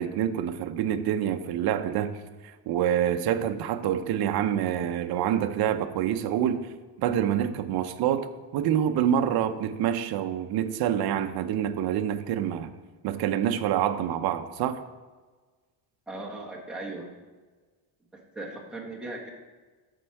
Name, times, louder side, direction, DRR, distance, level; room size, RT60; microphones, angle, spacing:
voice 1, 0.0-2.2 2.7-6.7 7.0-8.3 8.5-12.7 13.0-14.8, right 10 dB, 50° right, 8 dB, 0.6 m, -26 dB
voice 2, 16.1-17.1 18.1-19.3, right 2 dB, ahead, -3 dB, 1.3 m, -38 dB
13.0 x 4.4 x 4.7 m, 1.4 s
cardioid pair, 150°, 47 cm